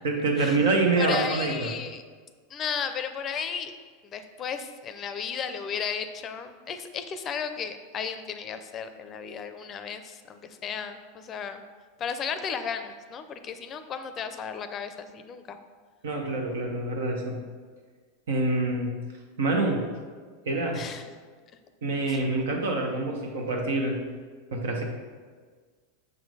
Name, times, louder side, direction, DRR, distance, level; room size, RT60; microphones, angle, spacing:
voice 1, 0.0-1.7 16.0-17.4 18.3-18.9 19.4-19.9 20.4-20.9 21.8-24.0 24.5-24.8, right 2 dB, 80° right, 2 dB, 1.1 m, -26 dB
voice 2, 1.0-2.0 2.5-3.7 4.0-11.6 12.0-15.6 20.7-21.0 22.1-22.2, left 6 dB, 35° left, 9 dB, 0.5 m, -34 dB
6.6 x 3.8 x 4.8 m, 1.5 s
hypercardioid pair, 105°, 0 cm